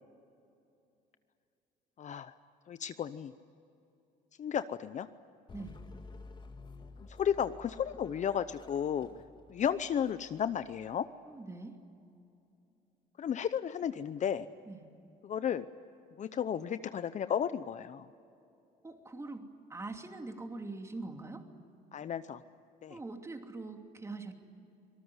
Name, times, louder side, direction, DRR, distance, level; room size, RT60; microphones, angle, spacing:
voice 1, 2.0-2.3 2.7-3.3 4.4-5.1 7.2-9.1 9.5-11.1 13.2-14.5 15.2-15.6 16.2-18.1 21.9-22.4 22.8-23.0, left 8 dB, 45° left, 12 dB, 0.8 m, -33 dB
sound 1, 5.5-11.0, left 3 dB, 25° left, 2.1 m, -52 dB
voice 2, 11.2-11.8 14.7-14.8 18.8-19.4 19.7-21.5 22.9-24.3, right 3 dB, 15° right, 4 dB, 2.8 m, -43 dB
26.0 x 19.0 x 9.8 m, 2.6 s
cardioid pair, 110°, 17 cm